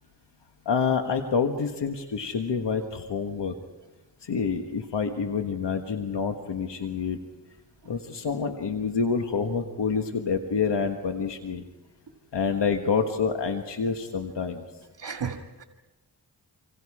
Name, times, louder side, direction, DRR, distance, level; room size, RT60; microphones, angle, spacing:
voice 1, 0.6-3.5 4.2-7.2 7.8-11.6 12.3-14.6, left 5 dB, 80° left, 5 dB, 1.5 m, -27 dB
voice 2, 15.0-15.6, right 6 dB, 70° right, 4 dB, 1.9 m, -34 dB
27.0 x 26.5 x 4.9 m, 1.1 s
cardioid pair, 65°, 41 cm